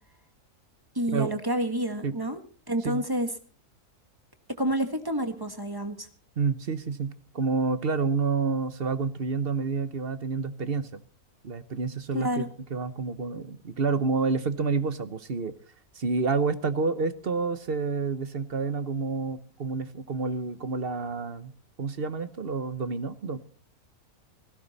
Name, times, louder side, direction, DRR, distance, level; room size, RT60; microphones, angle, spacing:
voice 1, 0.9-2.4 2.7-3.3 4.6-6.1 12.1-12.5, right 1 dB, 15° right, 7 dB, 1.5 m, -29 dB
voice 2, 6.4-10.9 11.4-15.5 15.9-21.5 21.8-23.4, right 4 dB, 40° right, 12 dB, 1.1 m, -29 dB
17.5 x 16.0 x 4.1 m, 0.41 s
omnidirectional pair, 1.6 m